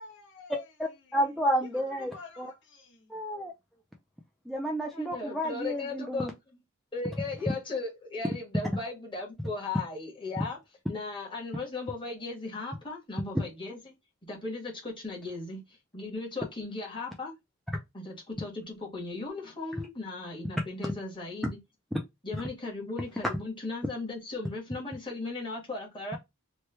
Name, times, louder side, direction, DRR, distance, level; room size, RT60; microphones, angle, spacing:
voice 1, 0.0-0.7 1.0-1.2 1.7-3.2, left 4 dB, 60° left, 0.9 m, -49 dB
voice 2, 0.8-2.5 3.1-3.5 4.5-6.3, equal, ahead, 0.4 m, -31 dB
voice 3, 4.9-6.3 6.9-10.6 10.9-13.9 14.3-15.6 15.9-17.3 17.9-21.6 22.2-26.2, left 3 dB, 25° left, 1.2 m, -37 dB
3.0 x 2.2 x 3.2 m
head